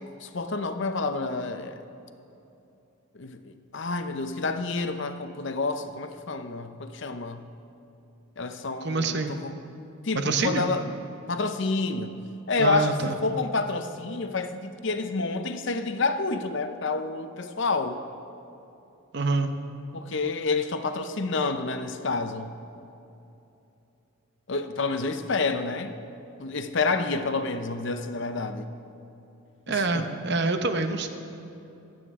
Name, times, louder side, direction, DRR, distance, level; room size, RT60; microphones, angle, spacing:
voice 1, 0.0-1.8 3.1-7.4 8.4-9.6 10.0-10.9 11.3-12.1 12.5-12.9 13.2-18.0 19.9-22.5 24.5-26.0 26.4-28.7 29.7-30.1, left 3 dB, 55° left, 8 dB, 0.7 m, -29 dB
voice 2, 8.8-9.4 10.1-10.7 12.6-13.2 19.1-19.5 29.7-31.1, right 3 dB, 55° right, 7 dB, 0.8 m, -26 dB
24.5 x 8.9 x 3.7 m, 2.8 s
head